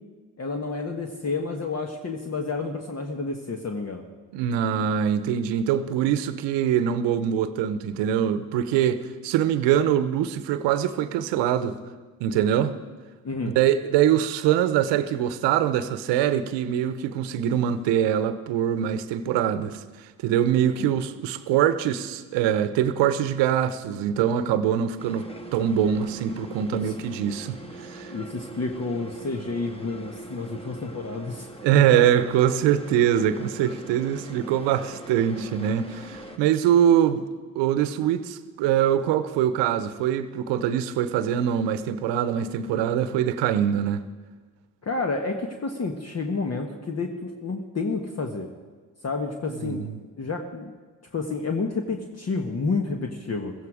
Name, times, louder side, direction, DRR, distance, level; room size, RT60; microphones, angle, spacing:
voice 1, 0.4-4.0 13.2-13.5 26.7-26.9 28.1-31.5 31.9-32.0 44.8-48.5 49.0-49.8 50.2-50.7 51.1-53.5, left 3 dB, 35° left, 3 dB, 1.5 m, -30 dB
voice 2, 4.3-11.7 12.2-12.8 13.5-19.8 20.2-25.3 25.5-28.1 31.6-37.3 37.5-44.0 49.6-50.0, right 10 dB, 80° right, 13 dB, 1.0 m, -23 dB
sound 1, 25.0-36.4, right 2 dB, 15° left, 1.8 m, -42 dB
15.5 x 14.5 x 5.0 m, 1.4 s
supercardioid pair, 60°, 42 cm